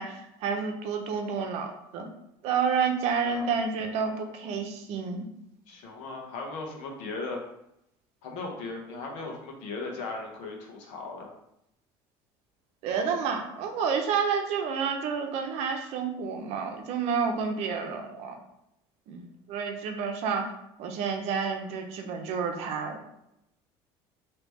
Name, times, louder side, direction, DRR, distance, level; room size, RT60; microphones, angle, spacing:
voice 1, 0.0-2.1 2.4-5.3 12.8-18.3 19.1-20.5 20.8-23.0, right 6 dB, 65° right, 4 dB, 0.7 m, -30 dB
voice 2, 5.7-7.4 8.2-11.3, left 3 dB, 75° left, 1 dB, 1.0 m, -37 dB
3.1 x 2.9 x 3.5 m, 0.80 s
cardioid pair, 140°, 12 cm